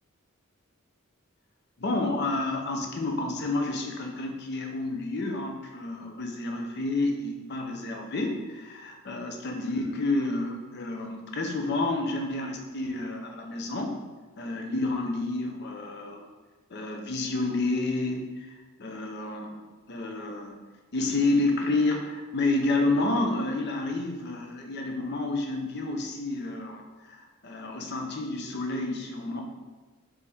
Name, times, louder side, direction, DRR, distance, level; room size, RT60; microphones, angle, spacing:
voice 1, 1.8-14.0 14.4-16.3 16.7-18.5 18.8-20.6 20.9-29.4, left 2 dB, 50° left, 3 dB, 0.6 m, -30 dB
4.1 x 3.4 x 3.4 m, 1.3 s
head